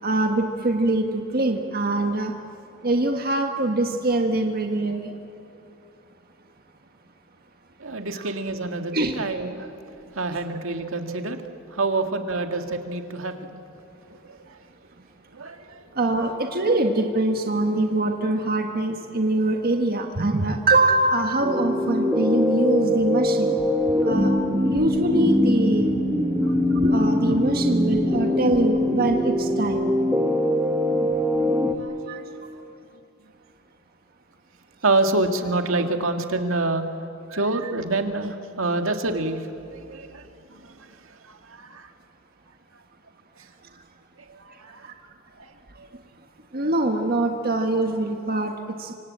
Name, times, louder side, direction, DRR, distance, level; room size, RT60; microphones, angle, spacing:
voice 1, 0.0-2.3 2.8-5.1 8.1-8.3 8.9-9.1 15.9-23.5 24.0-24.3 24.6-25.9 26.7-29.9 32.1-32.2 44.8-44.9 46.5-48.9, right 2 dB, 45° right, 4 dB, 1.6 m, -23 dB
voice 2, 7.8-9.8 10.1-13.5 14.1-14.6 15.3-15.9 26.4-26.6 31.8-32.4 34.8-36.8 37.3-40.2 40.5-40.9 41.2-41.9 44.3-44.9 45.4-45.9, right 2 dB, 70° right, 5 dB, 2.0 m, -27 dB
sound 1, 21.4-31.8, left 1 dB, 10° right, 1.5 m, -22 dB
26.0 x 25.5 x 8.7 m, 2.8 s
head